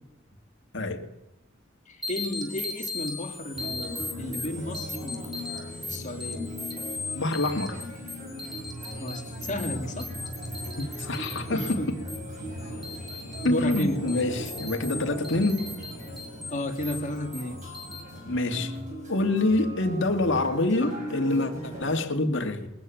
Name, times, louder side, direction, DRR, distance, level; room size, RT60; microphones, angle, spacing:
voice 1, 0.7-1.1 7.1-7.9 10.8-12.0 13.4-15.7 18.3-18.8 19.1-22.7, left 2 dB, 65° left, 6 dB, 2.2 m, -26 dB
voice 2, 1.9-5.6 5.8-6.4 9.0-10.1 11.5-12.0 13.4-14.1 16.5-17.6, left 1 dB, 40° left, 4 dB, 2.5 m, -33 dB
sound 1, 2.0-18.0, left 3 dB, ahead, 4.5 m, -39 dB
sound 2, 3.5-22.0, equal, 40° right, 7.1 m, -38 dB
21.0 x 14.5 x 9.3 m, 0.92 s
head